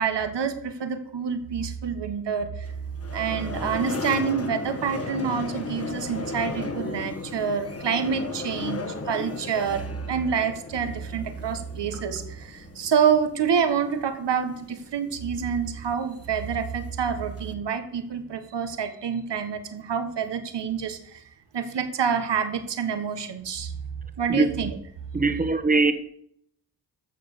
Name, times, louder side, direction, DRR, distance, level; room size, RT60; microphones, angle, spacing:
voice 1, 0.0-2.7 3.1-21.2 21.5-23.7 24.2-24.8, right 7 dB, 70° right, 1.5 m, -27 dB
sound 1, 2.6-17.5, left 3 dB, 35° left, 1.5 m, -36 dB
voice 2, 25.1-25.9, right 3 dB, 20° right, 1.4 m, -21 dB
14.5 x 6.3 x 6.7 m
cardioid pair, 55°, 43 cm